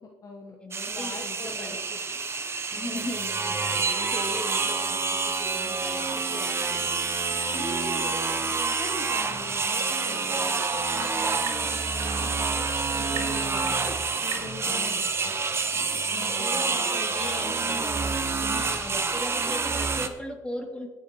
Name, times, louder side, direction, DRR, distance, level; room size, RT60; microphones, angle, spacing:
voice 1, 0.0-0.6 0.9-1.9 2.7-3.1 7.4-8.2 8.6-13.8 14.2-15.3 16.1-18.9, left 4 dB, 40° left, 0 dB, 1.4 m, -42 dB
voice 2, 0.6-1.8 2.7-6.0 6.3-7.0 12.2-12.6 13.0-14.0 14.6-15.1 16.1-17.4 18.5-20.9, left 1 dB, 15° left, 0 dB, 3.1 m, -38 dB
sound 1, 0.7-20.1, right 4 dB, 30° right, 1.0 m, -28 dB
sound 2, 3.9-4.2 6.0-6.2 8.1-8.4 10.0-10.4 12.0-12.4 13.8-14.1, right 5 dB, 50° right, 1.6 m, -41 dB
sound 3, 8.6-18.1, right 4 dB, 80° right, 2.7 m, -43 dB
20.5 x 7.2 x 3.2 m, 1.3 s
supercardioid pair, 80°, 9 cm